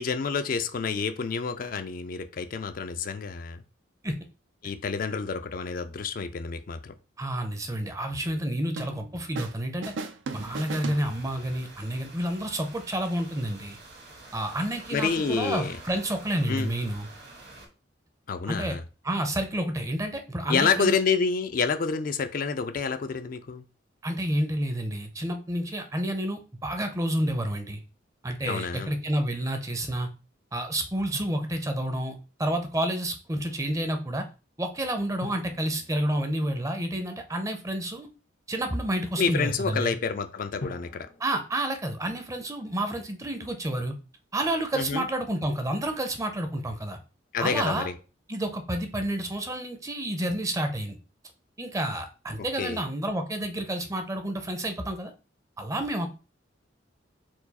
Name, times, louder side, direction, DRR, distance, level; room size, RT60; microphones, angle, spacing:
voice 1, 0.0-3.6 4.6-6.9 14.9-15.8 16.5-16.7 18.3-18.8 20.5-23.6 28.4-28.9 39.2-41.1 44.7-45.1 47.3-47.9 52.6-52.8, left 5 dB, 50° left, 0.4 m, -28 dB
voice 2, 7.2-9.9 10.3-13.8 14.3-17.1 18.5-18.8 19.0-21.0 24.0-27.8 28.2-30.1 30.5-34.2 34.6-38.1 38.5-39.9 41.2-43.9 44.3-47.0 47.4-47.9 48.3-51.0 51.6-55.1 55.6-56.1, right 1 dB, 15° right, 0.6 m, -29 dB
sound 1, 8.8-9.6 9.8-11.6, right 4 dB, 75° right, 0.5 m, -37 dB
sound 2, 10.3-17.7, right 2 dB, 60° right, 1.3 m, -47 dB
Drum, 31.1-32.2 35.2-37.0 40.6-42.6, left 2 dB, 80° left, 1.0 m, -45 dB
4.5 x 2.4 x 4.0 m
head